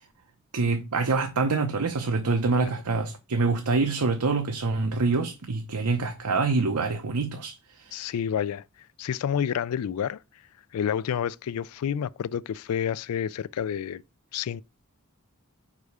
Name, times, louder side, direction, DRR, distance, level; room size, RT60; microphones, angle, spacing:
voice 1, 0.5-8.1, right 3 dB, 85° right, 0.8 m, -26 dB
voice 2, 7.9-8.6 9.0-10.2 10.7-14.0 14.3-14.6, left 8 dB, 75° left, 0.3 m, -29 dB
4.9 x 4.7 x 5.4 m
head